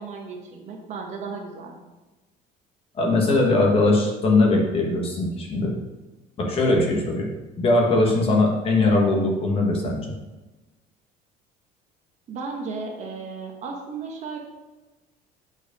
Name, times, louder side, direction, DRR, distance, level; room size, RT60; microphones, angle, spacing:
voice 1, 0.0-1.7 12.3-14.4, right 4 dB, 40° right, 2 dB, 1.2 m, -34 dB
voice 2, 2.9-5.7 6.4-7.3 7.6-10.0, left 2 dB, 30° left, 0 dB, 1.5 m, -20 dB
8.1 x 4.8 x 5.2 m, 1.1 s
cardioid pair, 175°, 18 cm